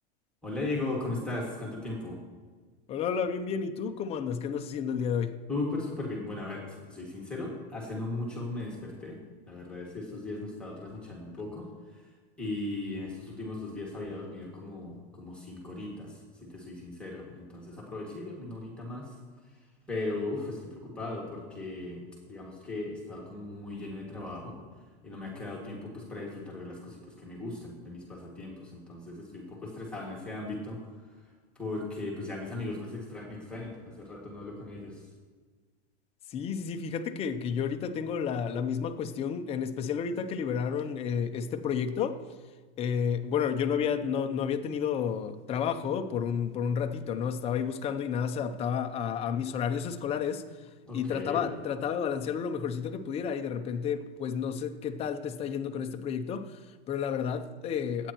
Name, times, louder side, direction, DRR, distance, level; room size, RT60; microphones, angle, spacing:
voice 1, 0.4-2.2 5.5-9.2 9.5-11.7 12.4-16.1 16.4-19.1 19.9-22.0 22.3-24.6 25.0-30.8 31.6-34.9 50.9-51.4, left 2 dB, 5° left, 2.0 m, -37 dB
voice 2, 2.9-5.4 36.3-42.2 42.8-50.4 50.9-58.1, left 7 dB, 20° left, 0.6 m, -31 dB
22.5 x 9.1 x 3.0 m
supercardioid pair, 150°, 32 cm